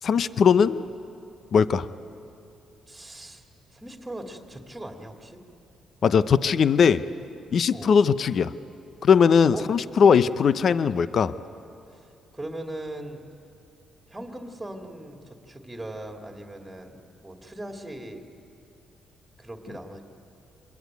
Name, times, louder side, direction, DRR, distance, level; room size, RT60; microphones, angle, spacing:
voice 1, 0.0-0.9 1.5-1.9 6.0-7.0 7.5-8.5 9.0-11.4, left 6 dB, 55° left, 14 dB, 0.7 m, -19 dB
voice 2, 2.9-3.5 3.7-5.4 7.7-7.9 9.5-9.6 11.9-13.2 14.1-18.2 19.4-20.0, right 1 dB, 10° right, 3 dB, 2.4 m, -39 dB
26.0 x 21.5 x 9.3 m, 2.6 s
cardioid pair, 90°, 0 cm